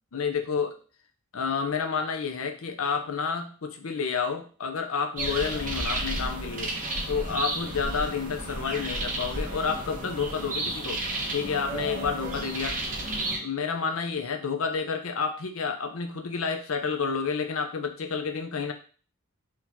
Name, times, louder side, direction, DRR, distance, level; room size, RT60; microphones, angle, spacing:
voice 1, 0.1-0.8 1.3-6.7 7.1-11.0 11.3-12.8 13.4-18.7, left 5 dB, 70° left, 5 dB, 0.6 m, -30 dB
sound 1, 5.2-13.4, right 1 dB, 40° right, 1.1 m, -32 dB
4.5 x 2.8 x 3.6 m, 0.39 s
head